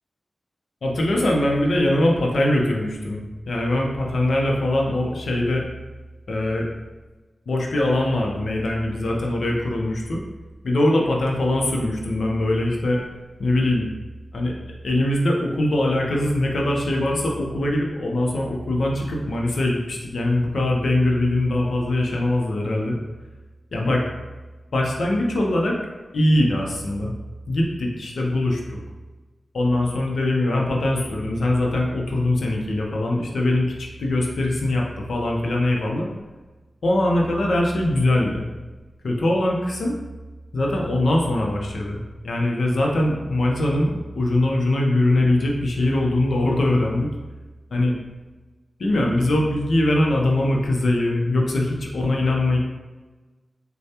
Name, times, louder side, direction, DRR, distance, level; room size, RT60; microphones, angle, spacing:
voice 1, 0.8-3.2 3.5-5.6 6.3-6.7 7.5-10.2 10.6-13.0 13.4-13.9 14.3-14.5 14.8-23.0 23.7-24.0 24.7-25.8 26.1-27.1 27.5-28.8 29.5-36.1 36.8-38.5 39.0-39.9 40.5-47.1 47.7-47.9 48.8-52.6, left 1 dB, 80° left, -1 dB, 0.7 m, -22 dB
6.6 x 2.2 x 2.9 m, 1.2 s
wide cardioid pair, 105°, 0 cm